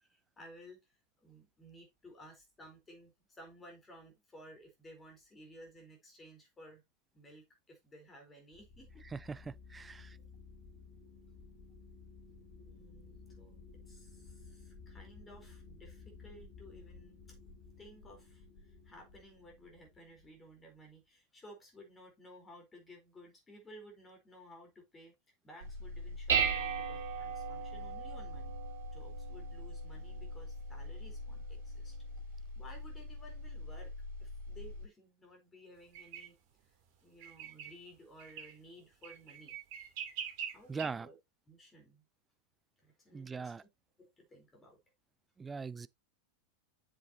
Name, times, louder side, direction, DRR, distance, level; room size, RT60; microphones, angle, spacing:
voice 1, 0.1-0.8 1.2-6.8 7.1-9.0 12.6-17.4 17.8-25.1 25.4-28.6 28.9-32.0 32.5-33.9 34.2-36.4 37.0-39.6 40.5-41.2 41.5-42.0 42.8-43.5 44.0-44.8, equal, 15° left, 4.2 m, -56 dB
sound 1, 8.5-20.8, left 4 dB, 50° left, 2.3 m, -55 dB
voice 2, 9.1-10.2 40.7-41.1 43.1-43.6 45.4-45.9, right 5 dB, 15° right, 0.4 m, -41 dB
Dishes pots and pans, 25.6-34.8, right 4 dB, 60° right, 4.0 m, -38 dB
sound 2, 35.9-36.3 37.2-37.8 38.2-38.5 39.0-40.9, right 8 dB, 45° right, 2.9 m, -43 dB
7.7 x 7.5 x 2.8 m
figure-of-eight pair, 90°, 0 cm